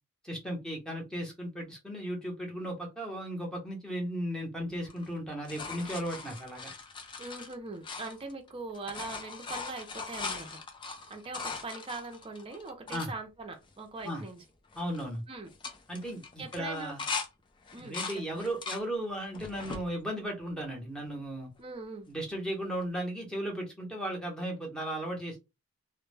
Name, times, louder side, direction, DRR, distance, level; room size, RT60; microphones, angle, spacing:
voice 1, 0.2-6.7 12.9-13.1 14.0-14.2 14.7-15.2 15.9-17.0 17.8-21.5 22.1-25.4, right 1 dB, 5° left, 0.8 m, -36 dB
sound 1, 4.8-8.5 8.7-13.1 13.7-13.8 14.0-14.4 14.7-15.0 15.5-17.3 17.6-18.8 19.3-19.8 20.5-21.2 22.8-22.9, left 4 dB, 20° left, 0.4 m, -40 dB
voice 2, 7.2-10.6 11.1-14.4 15.3-15.5 16.4-16.9 17.7-18.5 21.6-22.1, right 3 dB, 25° right, 0.5 m, -41 dB
2.2 x 2.1 x 3.2 m
head